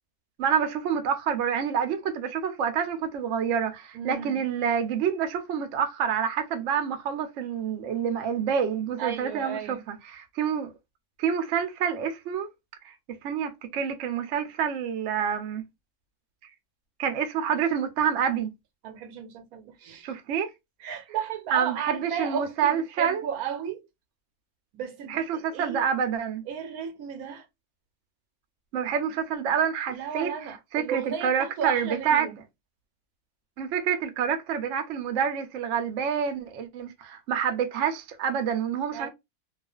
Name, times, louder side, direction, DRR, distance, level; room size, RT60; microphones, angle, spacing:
voice 1, 0.4-10.7 11.2-12.5 12.8-12.9 13.2-15.6 17.0-18.5 20.0-20.5 21.5-23.2 25.1-26.4 28.7-30.3 30.7-32.3 33.6-39.1, right 7 dB, 65° right, 0.8 m, -27 dB
voice 2, 3.9-4.4 9.0-9.8 18.8-20.1 20.8-23.8 24.7-25.9 26.5-27.5 29.9-32.3 38.9-39.1, right 8 dB, 85° right, 1.1 m, -34 dB
2.4 x 2.3 x 2.2 m
omnidirectional pair, 1.5 m